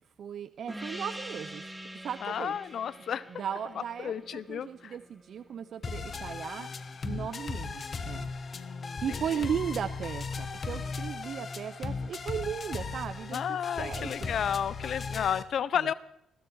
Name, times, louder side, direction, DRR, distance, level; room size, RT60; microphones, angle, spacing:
voice 1, 0.2-1.6 2.0-2.6 3.4-6.7 7.0-8.3 9.0-14.3, right 8 dB, 60° right, 13 dB, 0.6 m, -36 dB
Gong, 0.7-5.7, right 1 dB, 5° right, 1.9 m, -44 dB
voice 2, 2.2-3.3 4.0-5.0 8.5-9.2 13.3-15.9, left 8 dB, 60° left, 17 dB, 0.6 m, -32 dB
sound 1, 5.8-15.4, left 4 dB, 40° left, 1.3 m, -37 dB
21.0 x 14.5 x 4.7 m, 0.79 s
cardioid pair, 90°, 0 cm